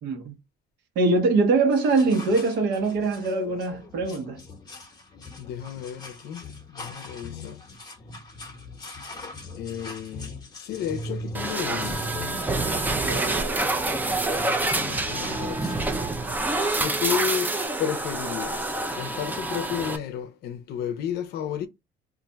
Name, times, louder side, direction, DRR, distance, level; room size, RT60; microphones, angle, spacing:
voice 1, 0.0-0.3 0.9-4.4 12.9-13.6, right 3 dB, 75° right, 1.0 m, -23 dB
sound 1, 1.7-17.7, left 2 dB, 25° left, 0.8 m, -41 dB
voice 2, 5.4-7.6 9.6-12.1 14.5-15.9 16.8-21.7, left 9 dB, 70° left, 0.5 m, -32 dB
sound 2, 11.3-20.0, right 2 dB, 10° right, 0.4 m, -27 dB
2.5 x 2.2 x 3.9 m
cardioid pair, 110°, 17 cm